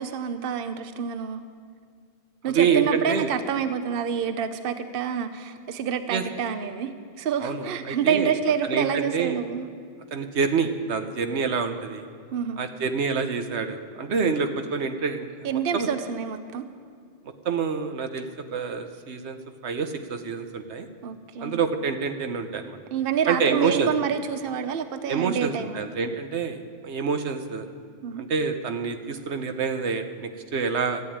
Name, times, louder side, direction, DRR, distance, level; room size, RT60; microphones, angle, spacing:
voice 1, 0.0-1.4 2.4-9.7 12.3-12.6 15.4-16.6 21.0-21.6 22.9-25.8 28.0-28.2, right 7 dB, 60° right, 10 dB, 0.9 m, -27 dB
voice 2, 2.4-3.3 6.1-6.2 7.4-8.3 8.6-9.4 10.1-12.0 12.6-15.3 15.5-15.9 17.4-19.4 19.6-20.9 21.4-22.8 23.3-23.9 25.1-27.7 28.2-31.0, right 5 dB, 85° right, 7 dB, 1.2 m, -27 dB
14.5 x 8.9 x 8.7 m, 2.1 s
omnidirectional pair, 1.1 m